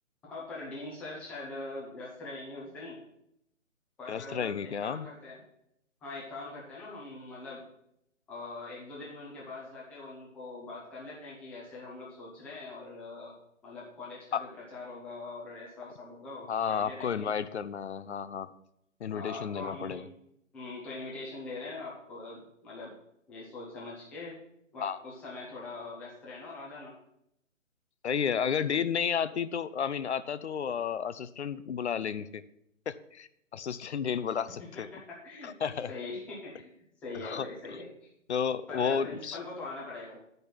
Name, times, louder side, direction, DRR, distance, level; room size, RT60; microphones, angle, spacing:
voice 1, 0.2-3.0 4.0-5.4 6.0-7.6 8.3-13.3 13.6-17.3 19.1-20.1 20.5-22.9 23.3-24.4 24.7-26.9 34.6-35.5 35.9-36.7 37.0-38.1 38.7-40.2, left 3 dB, 5° left, -6 dB, 0.7 m, -42 dB
voice 2, 4.1-5.1 14.3-14.4 16.5-18.5 19.0-20.0 24.8-25.0 28.0-32.4 32.9-34.9 35.4-35.9 37.2-37.5 38.3-39.4, left 7 dB, 55° left, 14 dB, 0.6 m, -32 dB
8.7 x 5.3 x 5.9 m, 0.76 s
figure-of-eight pair, 145°, 40 cm